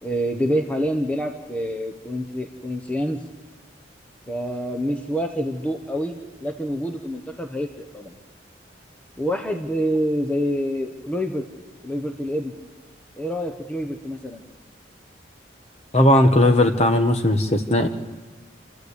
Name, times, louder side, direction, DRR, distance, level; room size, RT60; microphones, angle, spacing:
voice 1, 0.0-3.2 4.3-8.2 9.2-11.4 11.8-12.5 13.2-14.4, equal, 5° left, 3 dB, 1.0 m, -27 dB
voice 2, 15.9-17.9, left 1 dB, 35° left, 6 dB, 1.3 m, -17 dB
28.5 x 13.5 x 8.2 m, 1.4 s
head